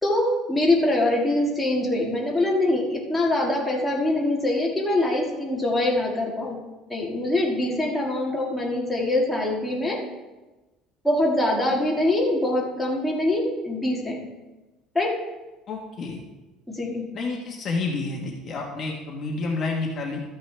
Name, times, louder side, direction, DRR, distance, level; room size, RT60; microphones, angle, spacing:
voice 1, 0.0-6.6 6.9-10.0 11.0-14.3 15.0-15.1 16.7-17.0, left 1 dB, 5° left, -4 dB, 1.8 m, -24 dB
voice 2, 15.7-16.2 17.1-20.2, left 3 dB, 35° left, -1 dB, 1.2 m, -29 dB
13.0 x 9.3 x 3.3 m, 1.1 s
cardioid pair, 155°, 0 cm